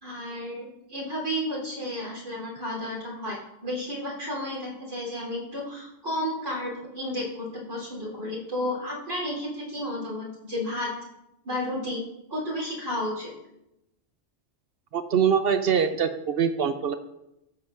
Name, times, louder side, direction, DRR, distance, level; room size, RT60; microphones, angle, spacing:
voice 1, 0.0-3.4 3.6-10.9 11.4-12.0 12.3-13.3, left 1 dB, 85° right, -4 dB, 4.0 m, -32 dB
voice 2, 14.9-16.9, right 7 dB, 60° right, 9 dB, 0.7 m, -23 dB
13.5 x 7.9 x 2.5 m, 0.86 s
omnidirectional pair, 1.2 m